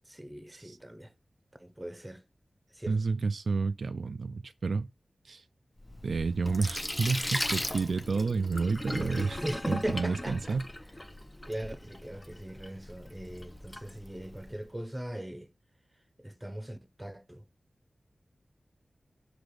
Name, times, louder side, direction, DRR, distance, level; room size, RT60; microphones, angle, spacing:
voice 1, 0.1-1.1 1.6-2.2 2.7-3.0 8.9-10.6 11.5-15.5 16.2-17.4, right 1 dB, 15° right, 0.7 m, -39 dB
voice 2, 2.9-4.9 5.2-5.4 6.0-10.7, right 4 dB, 80° right, 0.3 m, -30 dB
Sink (filling or washing), 5.8-14.6, left 1 dB, 25° left, 0.5 m, -38 dB
4.0 x 2.5 x 4.7 m
cardioid pair, 45°, 0 cm